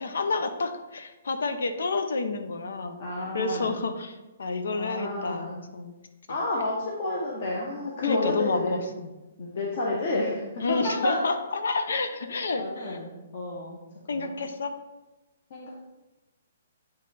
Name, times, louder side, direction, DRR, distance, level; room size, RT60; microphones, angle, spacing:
voice 1, 0.0-3.0 3.3-5.9 8.0-9.1 10.6-13.0 14.1-14.7, left 3 dB, 70° left, 8 dB, 0.7 m, -30 dB
voice 2, 3.0-3.7 4.7-5.6 6.3-8.8 9.4-11.2 12.5-13.8 14.1-14.3 15.5-15.7, left 2 dB, 35° left, -3 dB, 0.8 m, -30 dB
8.5 x 3.1 x 4.2 m, 1.1 s
hypercardioid pair, 180°, 0 cm